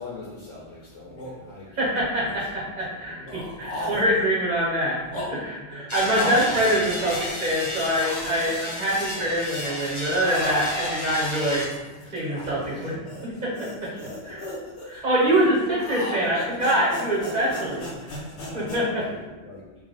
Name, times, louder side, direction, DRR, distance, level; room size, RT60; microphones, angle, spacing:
voice 1, 0.0-2.0 2.9-4.1 6.0-6.2 12.5-13.0 13.9-14.5 14.9-15.0 18.5-19.6, left 3 dB, 85° left, -6 dB, 1.1 m, -43 dB
sound 1, 0.7-0.8 1.0-1.3 2.0-2.7 3.2-4.4 4.9-7.7 8.0-9.3 9.6-18.8, left 1 dB, 70° left, 1.2 m, -36 dB
voice 2, 1.8-11.7 12.1-13.0 13.2-13.9 14.2-14.4 14.8-18.2 18.5-19.1, equal, 40° right, -6 dB, 1.2 m, -25 dB
sound 2, 5.9-11.7, left 1 dB, 25° left, 0.9 m, -33 dB
3.2 x 2.7 x 4.0 m, 1.2 s
omnidirectional pair, 1.2 m